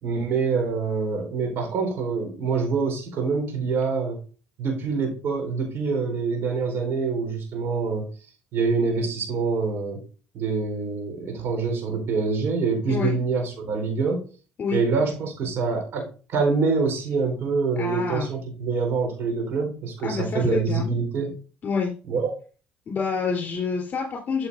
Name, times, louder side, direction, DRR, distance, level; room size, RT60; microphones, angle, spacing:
voice 1, 0.0-4.2 4.6-8.1 8.5-10.0 10.3-14.2 14.7-21.3 22.1-22.3, right 4 dB, 60° right, 3 dB, 4.3 m, -25 dB
voice 2, 17.8-18.3 20.0-20.9 21.6-21.9 22.9-24.5, left 5 dB, 40° left, -1 dB, 3.6 m, -27 dB
13.0 x 7.9 x 2.6 m, 0.37 s
cardioid pair, 105°, 5 cm